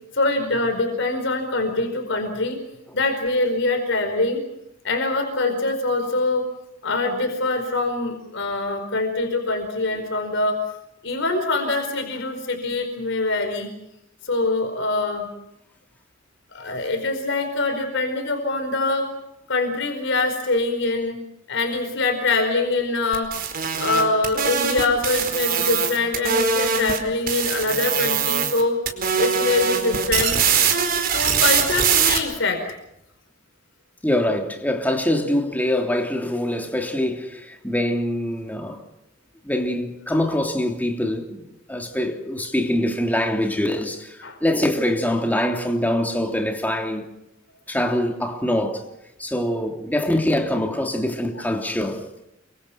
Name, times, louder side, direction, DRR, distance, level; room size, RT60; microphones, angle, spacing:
voice 1, 0.1-2.6 2.9-4.4 4.8-6.4 6.8-10.6 11.0-13.7 14.2-15.3 16.5-19.1 19.5-21.2 21.5-23.3 23.8-28.8 29.2-30.4 31.1-32.6 44.2-44.4, left 2 dB, 65° left, 4.8 m, -24 dB
sound 1, 23.1-27.0 27.3-28.6 28.9-32.2, right 6 dB, 50° right, 4.7 m, -22 dB
voice 2, 34.0-38.8 39.4-47.1 47.7-48.8 49.2-52.3, left 1 dB, 10° left, 3.2 m, -24 dB
29.5 x 24.5 x 5.9 m
head